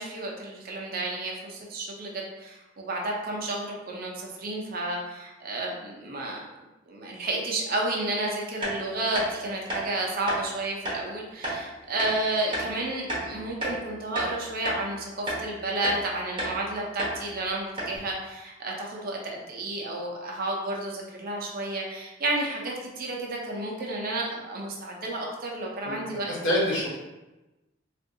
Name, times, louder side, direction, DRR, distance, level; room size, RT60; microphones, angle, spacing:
voice 1, 0.0-6.4 6.9-26.3, right 2 dB, 50° right, -1 dB, 0.6 m, -31 dB
sound 1, 8.6-8.8 9.1-9.3 9.7-9.8 10.3-10.4 10.8-11.0 11.4-11.6 12.0-12.1 12.5-12.7 13.1-13.8 14.1-14.3 14.6-14.8 15.3-15.4 15.8-16.0 16.4-16.6 17.0-17.2 17.4-17.5 17.8-18.0, right 1 dB, 25° right, 0.9 m, -31 dB
voice 2, 26.3-26.9, equal, 80° left, -5 dB, 1.1 m, -25 dB
3.6 x 2.5 x 2.6 m, 1.0 s
head